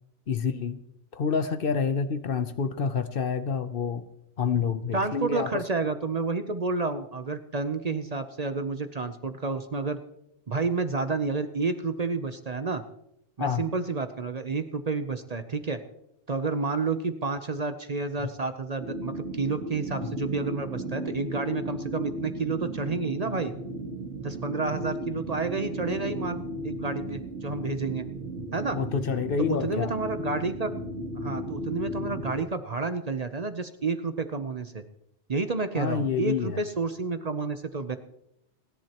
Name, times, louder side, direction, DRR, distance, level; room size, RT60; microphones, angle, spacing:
voice 1, 0.3-0.8 1.1-4.0 4.4-5.6 13.4-13.6 28.7-29.9 35.7-36.6, left 6 dB, 55° left, 11 dB, 0.9 m, -28 dB
voice 2, 4.9-10.0 10.5-12.8 13.4-15.8 16.3-23.5 24.2-28.1 28.5-28.8 29.5-30.7 31.2-34.8 35.3-38.0, right 4 dB, 40° right, 9 dB, 0.7 m, -30 dB
sound 1, 18.8-32.4, right 1 dB, 70° right, 1.8 m, -35 dB
30.0 x 11.0 x 2.9 m, 0.79 s
omnidirectional pair, 1.2 m